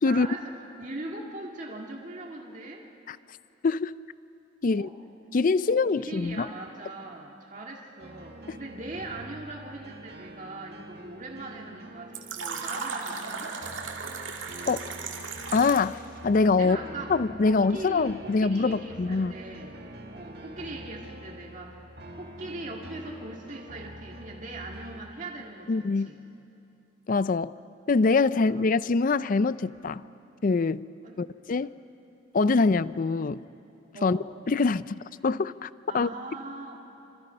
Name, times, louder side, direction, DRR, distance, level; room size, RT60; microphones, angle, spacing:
voice 1, 0.1-0.5 0.8-2.9 4.6-4.9 5.7-13.5 16.6-17.2 17.4-19.9 20.1-21.9 22.2-26.2 28.5-28.6 31.0-31.2 31.6-31.7 33.9-34.3 35.9-36.9, right 2 dB, 40° right, 0 dB, 1.9 m, -40 dB
voice 2, 3.6-4.0 4.6-4.9 5.3-6.5 8.5-8.6 14.7-14.8 15.5-16.8 17.1-19.3 25.7-26.1 27.1-27.5 27.9-30.0 30.4-30.9 31.2-31.7 32.3-33.4 34.0-34.2 34.5-34.9 35.2-36.1, left 4 dB, 45° left, 17 dB, 0.4 m, -24 dB
sound 1, 8.0-25.0, right 1 dB, 55° right, 1.9 m, -45 dB
Fill (with liquid), 12.1-16.0, right 5 dB, 85° right, 2.4 m, -36 dB
26.0 x 25.5 x 5.5 m, 2.8 s
head